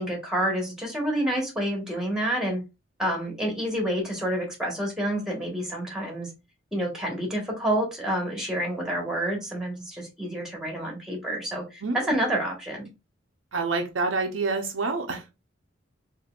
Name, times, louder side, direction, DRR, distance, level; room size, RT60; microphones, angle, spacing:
voice 1, 0.0-2.6 3.0-6.3 6.7-12.9, right 1 dB, 5° right, 1.4 m, -28 dB
voice 2, 11.8-12.1 13.5-15.3, right 3 dB, 90° right, 0.8 m, -27 dB
4.3 x 2.7 x 2.4 m
head